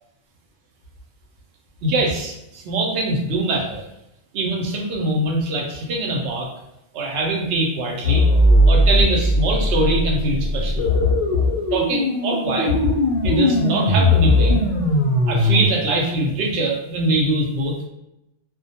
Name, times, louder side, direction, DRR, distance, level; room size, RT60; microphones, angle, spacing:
voice 1, 1.8-3.8 4.3-6.5 6.9-8.2 8.7-10.9 11.7-12.7 13.2-14.6 15.3-17.8, right 2 dB, 65° right, -1 dB, 0.8 m, -23 dB
sound 1, 8.0-15.7, left 1 dB, 65° left, 0.4 m, -18 dB
2.2 x 2.2 x 2.7 m, 0.88 s
omnidirectional pair, 1.3 m